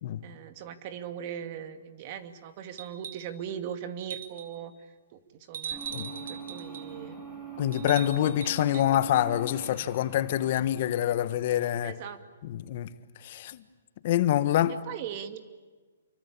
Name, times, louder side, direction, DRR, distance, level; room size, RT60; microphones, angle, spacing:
voice 1, 0.2-4.7 5.1-5.2 5.5-7.2 11.8-12.2 14.9-15.4, right 9 dB, 40° right, 2.5 m, -39 dB
sound 1, 2.8-3.4 4.0-4.6 5.5-6.9 7.7-8.9 10.5-10.6, right 8 dB, 65° right, 3.6 m, -40 dB
sound 2, 5.7-12.1, right 3 dB, 15° right, 7.5 m, -43 dB
voice 2, 7.6-12.0 12.4-12.9 13.2-13.6 14.0-14.8, left 12 dB, 45° left, 1.4 m, -26 dB
28.5 x 24.0 x 8.7 m
hypercardioid pair, 150°, 0 cm